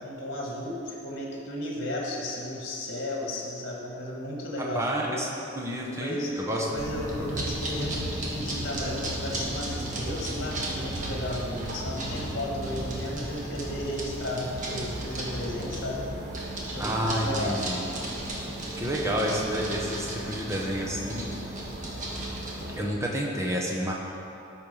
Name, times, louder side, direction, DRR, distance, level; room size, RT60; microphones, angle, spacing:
voice 1, 0.0-5.2 5.8-16.0 16.6-17.6, left 1 dB, 50° left, -3 dB, 1.6 m, -34 dB
voice 2, 4.7-6.7 7.2-7.3 16.8-17.8 18.8-21.3 22.7-23.9, equal, 15° right, -2 dB, 1.1 m, -29 dB
sound 1, 6.8-22.8, right 1 dB, 40° right, 1.4 m, -34 dB
13.0 x 4.5 x 5.6 m, 2.9 s
head